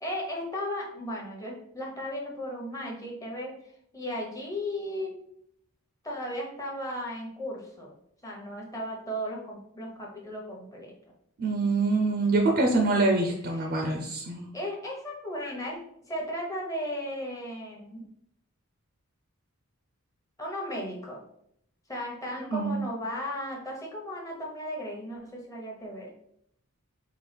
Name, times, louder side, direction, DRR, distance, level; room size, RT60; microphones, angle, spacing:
voice 1, 0.0-3.5 3.9-5.2 6.0-7.9 8.2-10.9 14.5-15.8 16.1-18.1 20.4-21.2 21.9-26.1, equal, 15° left, -2 dB, 0.9 m, -35 dB
voice 2, 11.4-14.5 22.5-22.8, right 3 dB, 40° right, 2 dB, 0.5 m, -25 dB
4.5 x 2.4 x 3.3 m, 0.71 s
head